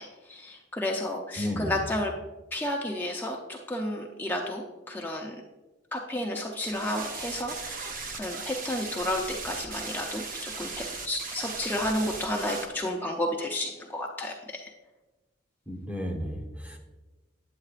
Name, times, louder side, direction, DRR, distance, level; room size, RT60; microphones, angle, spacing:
voice 1, 0.0-2.1 2.5-5.4 5.9-14.7, left 1 dB, 10° left, 0 dB, 0.5 m, -32 dB
voice 2, 1.4-1.8 15.7-16.8, left 1 dB, 10° right, 1 dB, 0.9 m, -33 dB
sound 1, 6.6-12.7, right 4 dB, 45° right, 0.7 m, -37 dB
9.5 x 7.5 x 2.4 m, 1.1 s
head